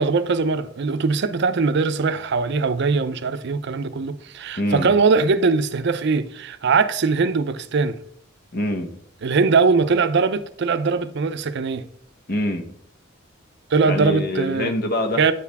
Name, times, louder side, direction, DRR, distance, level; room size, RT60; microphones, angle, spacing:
voice 1, 0.0-8.0 9.2-11.8 13.7-14.7 15.2-15.3, right 4 dB, 55° right, 0.5 m, -21 dB
voice 2, 4.6-4.9 8.5-8.9 12.3-12.7 13.9-15.3, left 1 dB, 50° left, 1.0 m, -25 dB
9.1 x 4.7 x 3.4 m
head